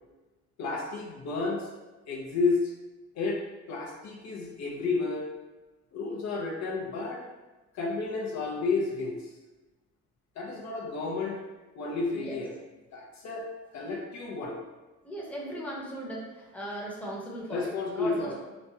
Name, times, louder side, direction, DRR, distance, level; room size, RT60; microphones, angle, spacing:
voice 1, 0.6-1.7 2.1-2.7 3.1-3.4 3.7-5.3 5.9-7.2 7.7-9.3 10.4-11.4 11.7-12.5 12.9-13.5 13.7-14.6 17.5-18.3, left 3 dB, 65° left, -1 dB, 0.6 m, -31 dB
voice 2, 15.0-18.3, right 1 dB, 5° left, -4 dB, 0.7 m, -38 dB
3.0 x 2.2 x 2.7 m, 1.1 s
cardioid pair, 90°, 30 cm